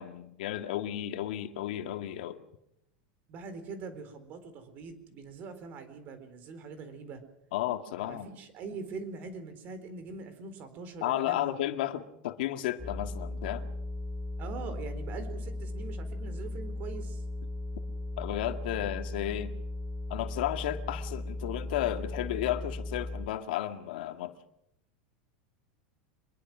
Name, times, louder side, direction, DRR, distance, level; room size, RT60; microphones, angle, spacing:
voice 1, 0.0-2.4 7.5-8.3 11.0-13.7 18.2-19.5 20.1-24.3, left 13 dB, 70° left, 2.0 m, -33 dB
voice 2, 3.3-7.2 8.0-11.5 14.4-17.2, right 4 dB, 35° right, 4.2 m, -43 dB
sound 1, 12.8-23.3, left 1 dB, 5° right, 2.6 m, -37 dB
25.0 x 22.0 x 6.2 m
supercardioid pair, 160°, 5 cm